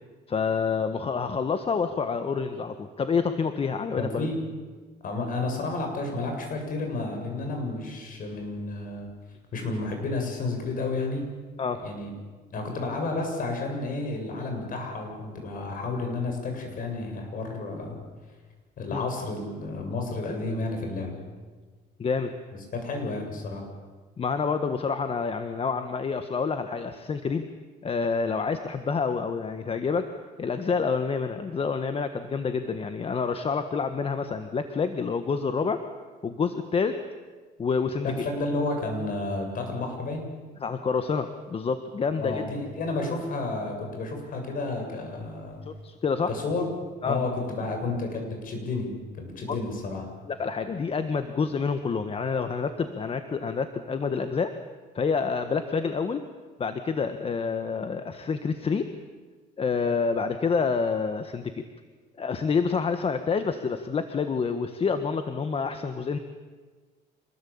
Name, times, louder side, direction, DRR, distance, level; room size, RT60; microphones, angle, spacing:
voice 1, 0.3-4.3 11.6-11.8 18.9-19.0 22.0-22.3 24.2-27.5 27.8-30.1 30.4-35.8 36.2-37.0 37.6-38.1 40.6-42.5 45.6-46.3 47.0-47.2 49.5-49.6 50.3-54.5 54.9-56.2 56.6-58.9 59.6-61.6 62.2-66.2, left 5 dB, 35° left, 9 dB, 1.5 m, -28 dB
voice 2, 4.0-4.4 5.0-9.1 9.5-11.3 11.8-12.1 12.5-18.0 18.8-21.1 22.7-23.6 38.0-40.3 42.1-45.6 46.3-46.6 47.0-50.0, left 3 dB, 55° left, 3 dB, 7.7 m, -31 dB
27.0 x 20.5 x 8.8 m, 1.4 s
cardioid pair, 110°, 17 cm